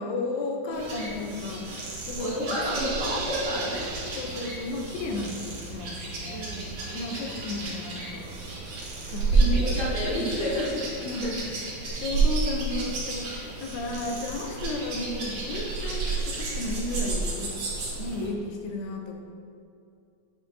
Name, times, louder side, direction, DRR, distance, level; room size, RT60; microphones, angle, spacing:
voice 1, 0.0-2.5 4.2-6.4 6.9-8.4 9.1-9.6 11.0-11.4 12.0-17.6 18.0-19.2, left 2 dB, 80° left, 2 dB, 2.5 m, -33 dB
voice 2, 0.6-1.2 2.2-3.9 6.3-7.3 9.3-10.9 11.2-11.3, equal, 50° right, -14 dB, 1.3 m, -31 dB
sound 1, 0.7-18.3, right 3 dB, 70° right, 1.4 m, -31 dB
sound 2, 1.7-10.6, right 2 dB, 65° left, 2.7 m, -48 dB
sound 3, 2.4-5.0, right 4 dB, 90° right, 2.9 m, -37 dB
9.3 x 5.8 x 2.7 m, 2.5 s
omnidirectional pair, 5.0 m